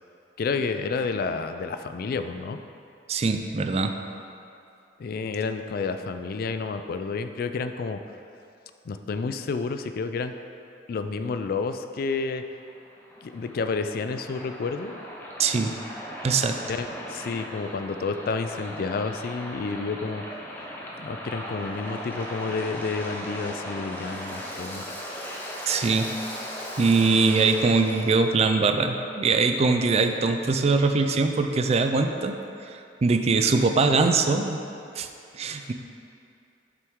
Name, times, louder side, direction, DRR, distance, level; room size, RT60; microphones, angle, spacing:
voice 1, 0.4-2.6 5.0-8.0 8.9-10.3 10.9-12.4 13.2-15.0 16.7-20.2 21.0-25.0 35.6-35.7, left 4 dB, 55° left, 8 dB, 0.3 m, -30 dB
voice 2, 3.1-4.0 15.4-15.8 16.2-16.6 25.7-26.1 26.8-32.3 32.7-34.6 35.0-35.1 35.3-35.7, right 4 dB, 35° right, 6 dB, 0.4 m, -22 dB
Waves surf, 12.4-28.2, equal, 10° left, 0.9 m, -38 dB
7.7 x 6.0 x 3.6 m, 2.6 s
head